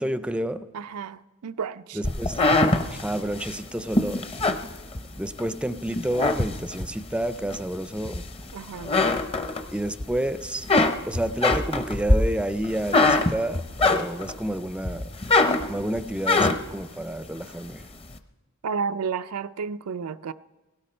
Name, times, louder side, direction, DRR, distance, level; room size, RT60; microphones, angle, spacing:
voice 1, 0.0-0.7 1.9-2.4 2.9-4.3 5.2-8.2 9.7-10.7 11.1-15.1 15.7-17.9, right 1 dB, 5° right, 0.4 m, -30 dB
voice 2, 0.7-2.0 8.5-9.0 18.6-20.3, right 5 dB, 85° right, 0.5 m, -31 dB
sound 1, 2.0-5.5 5.9-7.0 7.5-8.5 8.8-10.1 10.4-14.4 14.8-16.8, left 2 dB, 25° left, 0.7 m, -23 dB
17.5 x 17.0 x 4.4 m
head